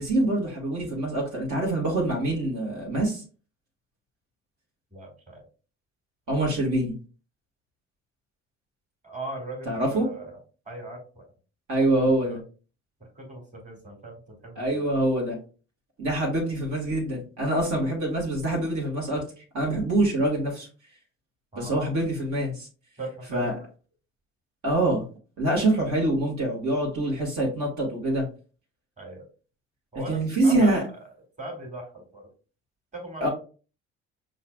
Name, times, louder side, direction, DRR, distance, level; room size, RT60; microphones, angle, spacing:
voice 1, 0.0-3.2 6.3-6.9 9.7-10.0 11.7-12.4 14.6-15.4 16.0-19.3 19.5-20.7 21.6-22.7 23.3-23.5 24.6-25.0 25.4-28.3 30.1-30.8 33.2-33.3, right 1 dB, 65° right, -2 dB, 1.7 m, -25 dB
voice 2, 4.9-5.5 9.0-10.4 10.7-11.3 11.7-12.4 13.0-14.9 21.5-21.7 23.0-23.5 29.0-29.3 29.9-31.0 31.4-32.3 32.9-33.3, right 2 dB, 25° right, 1 dB, 1.9 m, -39 dB
5.5 x 2.5 x 2.2 m, 0.36 s
hypercardioid pair, 60°, 32 cm